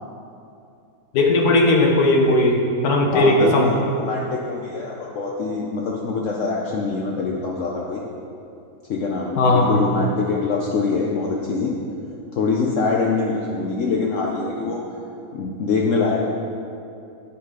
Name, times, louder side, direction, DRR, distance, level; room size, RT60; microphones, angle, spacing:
voice 1, 1.1-3.7 9.4-9.8, left 2 dB, 90° left, 1 dB, 1.5 m, -17 dB
voice 2, 3.1-8.0 8.9-11.8 12.3-14.8 15.3-16.2, left 4 dB, 65° left, -1 dB, 1.0 m, -24 dB
8.4 x 6.1 x 4.8 m, 2.6 s
omnidirectional pair, 1.6 m